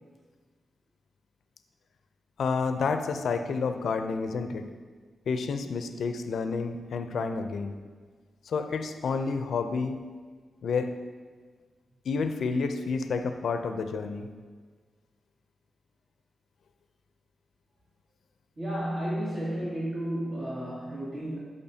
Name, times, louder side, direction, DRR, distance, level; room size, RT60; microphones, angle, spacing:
voice 1, 2.4-4.6 5.3-7.7 8.4-10.0 10.6-10.9 12.0-14.3, left 4 dB, 75° left, 8 dB, 0.5 m, -29 dB
voice 2, 18.6-21.4, right 1 dB, 55° right, -10 dB, 2.4 m, -32 dB
12.0 x 5.5 x 2.8 m, 1.5 s
supercardioid pair, 45°, 0 cm